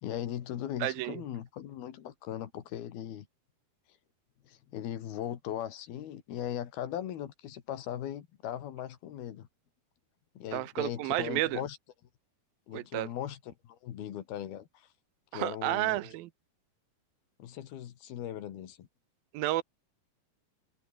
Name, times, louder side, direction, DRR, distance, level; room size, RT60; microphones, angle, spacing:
voice 1, 0.0-3.3 4.4-9.5 10.4-11.8 12.7-14.9 15.3-16.1 17.4-18.9, left 11 dB, 90° left, 3.9 m, -39 dB
voice 2, 0.8-1.2 10.5-11.6 12.7-13.1 15.3-16.3 19.3-19.6, right 16 dB, 80° right, 2.6 m, -31 dB
omnidirectional pair, 4.3 m